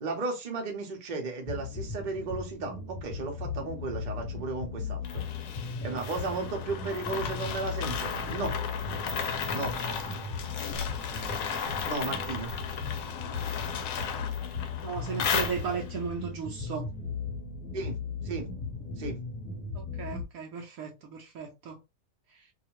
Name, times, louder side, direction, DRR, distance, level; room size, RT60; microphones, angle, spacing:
voice 1, 0.0-5.2 5.8-8.6 9.5-9.7 11.8-12.5 17.7-18.0 18.2-18.5 19.0-19.2, right 3 dB, 40° right, 0.7 m, -34 dB
sound 1, 1.5-20.2, left 4 dB, 30° left, 0.9 m, -37 dB
sound 2, 5.0-16.0, left 6 dB, 70° left, 0.9 m, -35 dB
voice 2, 14.8-16.9 19.7-21.8 22.3-22.5, right 6 dB, 65° right, 0.9 m, -36 dB
2.7 x 2.4 x 2.9 m
omnidirectional pair, 1.8 m